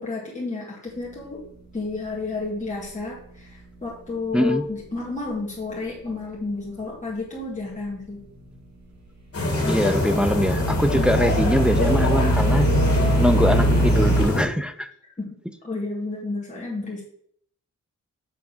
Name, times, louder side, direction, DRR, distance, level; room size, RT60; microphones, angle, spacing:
voice 1, 0.0-1.4 1.7-8.2 10.9-11.2 15.2-15.3 15.6-17.0, left 3 dB, 25° left, -5 dB, 1.8 m, -31 dB
sound 1, 9.3-14.4, left 2 dB, 45° left, 2.5 m, -24 dB
voice 2, 9.6-12.7 13.2-14.9, equal, 5° right, 9 dB, 0.5 m, -22 dB
sound 2, 9.8-14.2, right 2 dB, 60° right, 2.8 m, -22 dB
7.1 x 3.5 x 6.3 m, 0.67 s
wide cardioid pair, 110°, 32 cm